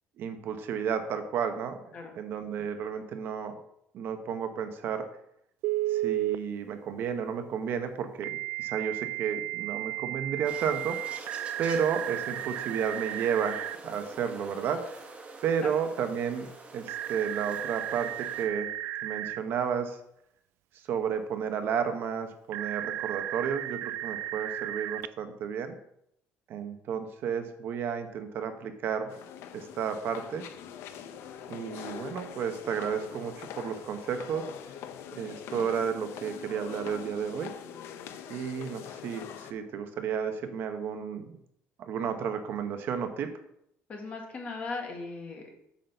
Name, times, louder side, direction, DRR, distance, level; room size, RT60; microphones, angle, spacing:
voice 1, 0.2-1.8 2.1-3.6 3.9-5.0 5.9-11.0 11.6-15.0 15.4-18.7 19.0-20.0 20.9-25.8 26.5-29.1 29.5-30.4 31.5-34.5 35.1-37.5 38.3-41.3 41.8-43.3, right 7 dB, 50° right, 7 dB, 0.8 m, -32 dB
Telephone, 5.6-6.4 8.2-13.8 16.9-19.4 22.5-25.1, right 15 dB, 65° right, 0.3 m, -34 dB
sound 1, 10.4-18.5, right 3 dB, 25° right, 1.3 m, -45 dB
sound 2, 29.1-39.5, left 9 dB, 65° left, 0.7 m, -43 dB
voice 2, 43.9-45.5, left 3 dB, 30° left, 2 dB, 1.6 m, -38 dB
8.6 x 4.0 x 6.6 m, 0.75 s
cardioid pair, 170°, 5 cm